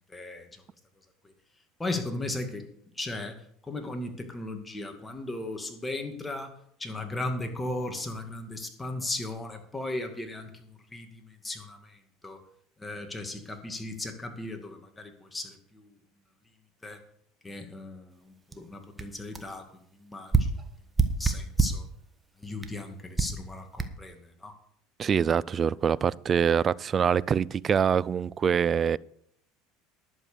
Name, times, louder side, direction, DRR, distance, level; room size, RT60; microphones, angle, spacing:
voice 1, 0.1-0.5 1.8-2.6 3.0-3.3 3.7-6.5 6.8-12.0 12.2-12.4 12.8-15.9 16.8-17.0 17.4-19.6 20.0-20.5 21.2-21.9 22.4-24.2 24.4-24.5, left 2 dB, 15° left, 2.2 m, -36 dB
sound 1, 18.5-18.6 19.0-19.1 19.3-19.5 20.3-21.9 22.6-22.8 23.2-23.4 23.8-23.9, right 4 dB, 15° right, 1.2 m, -26 dB
voice 2, 25.0-29.0, right 7 dB, 35° right, 0.4 m, -24 dB
11.0 x 7.3 x 6.9 m
supercardioid pair, 95°, 0 cm